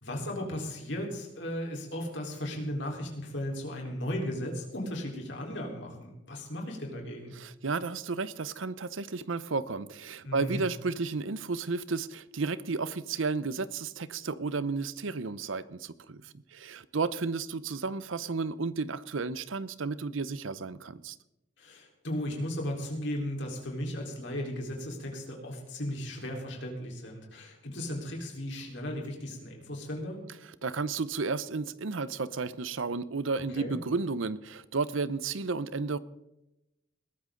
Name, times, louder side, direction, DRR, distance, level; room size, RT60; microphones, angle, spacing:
voice 1, 0.0-7.3 10.2-10.6 21.6-30.2 33.6-33.7, left 1 dB, 70° left, 4.1 m, -36 dB
voice 2, 7.3-21.2 30.4-36.0, right 4 dB, 85° right, 0.7 m, -33 dB
21.0 x 13.5 x 3.9 m
head